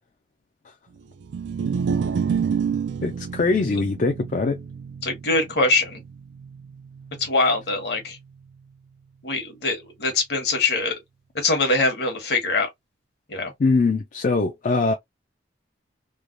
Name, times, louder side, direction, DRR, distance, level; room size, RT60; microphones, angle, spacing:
sound 1, 1.2-7.6, right 6 dB, 80° right, 0.3 m, -29 dB
voice 1, 3.0-4.6 13.6-14.9, left 3 dB, 45° left, 0.4 m, -22 dB
voice 2, 5.0-6.0 7.2-8.2 9.2-11.0 11.3-12.7 13.3-13.5, left 3 dB, 60° left, 1.2 m, -23 dB
3.2 x 2.2 x 2.5 m
head